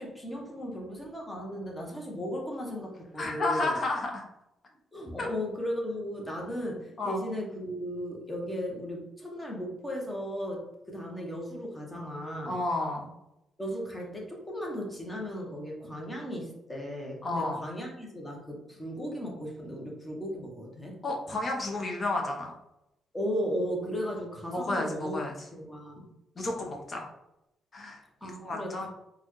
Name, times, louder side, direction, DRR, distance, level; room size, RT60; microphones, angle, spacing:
voice 1, 0.0-3.8 4.9-12.6 13.6-20.9 23.1-25.2 25.5-26.1 28.2-28.9, equal, 10° left, -1 dB, 1.1 m, -36 dB
voice 2, 3.2-4.2 5.2-5.3 7.0-7.2 12.4-13.1 17.2-17.7 21.0-22.5 24.5-25.3 26.4-27.1 27.7-28.9, left 2 dB, 35° left, 1 dB, 0.9 m, -31 dB
4.0 x 2.4 x 3.1 m, 0.88 s
cardioid pair, 90°, 0 cm